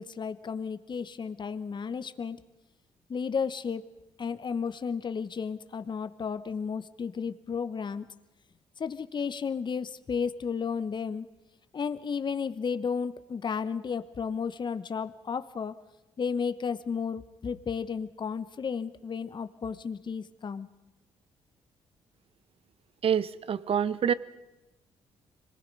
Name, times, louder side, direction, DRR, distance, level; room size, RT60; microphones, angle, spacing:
voice 1, 0.0-2.4 3.1-3.8 4.2-8.1 8.8-11.3 11.7-15.8 16.2-20.7, left 6 dB, 40° left, 11 dB, 1.0 m, -33 dB
voice 2, 23.0-24.1, right 8 dB, 55° right, 17 dB, 0.8 m, -26 dB
25.5 x 19.5 x 5.4 m, 1.0 s
supercardioid pair, 60°, 12 cm